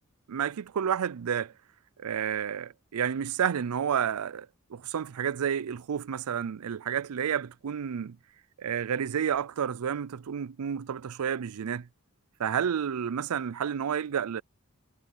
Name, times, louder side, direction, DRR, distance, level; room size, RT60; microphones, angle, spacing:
voice 1, 0.3-1.5 2.0-8.2 8.6-11.9 12.4-14.4, right 8 dB, 85° right, 0.4 m, -30 dB
head